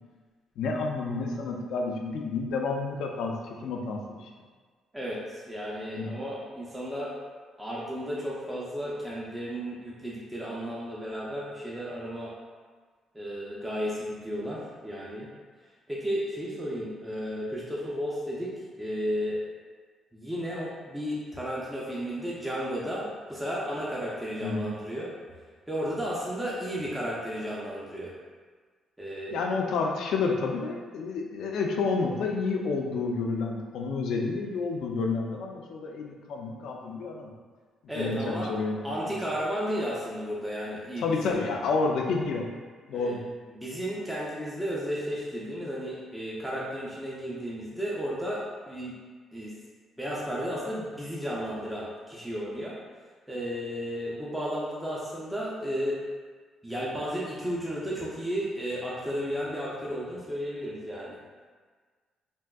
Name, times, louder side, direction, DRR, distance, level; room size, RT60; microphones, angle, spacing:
voice 1, 0.6-4.3 5.9-6.1 24.4-24.7 29.3-37.3 37.9-39.2 41.0-42.5 42.9-43.2, left 4 dB, 80° left, 1 dB, 0.4 m, -30 dB
voice 2, 4.9-7.1 7.6-12.3 13.1-15.3 15.9-19.4 20.1-25.1 25.7-28.1 29.0-29.4 37.9-38.5 38.8-41.4 42.9-43.2 43.6-49.0 49.3-49.5 50.0-52.8 53.3-56.0 56.6-61.2, equal, 10° right, -6 dB, 0.6 m, -33 dB
3.5 x 2.6 x 2.3 m, 1.5 s
cardioid pair, 90°, 0 cm